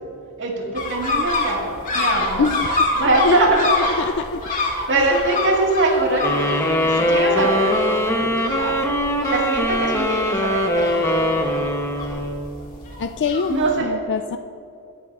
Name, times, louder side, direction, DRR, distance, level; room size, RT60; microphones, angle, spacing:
voice 1, 0.4-2.5 3.0-4.0 4.9-8.8 9.3-12.2 13.5-13.9, right 2 dB, 55° right, 0 dB, 2.0 m, -23 dB
sound 1, 0.7-13.8, left 2 dB, 40° left, 2.2 m, -27 dB
voice 2, 2.4-2.7 3.2-3.4 4.0-4.4 4.9-5.1 13.0-14.4, left 5 dB, 55° left, 7 dB, 0.4 m, -23 dB
sound 2, 6.2-12.6, equal, 15° left, 1.0 m, -21 dB
22.5 x 10.0 x 2.5 m, 2.7 s
head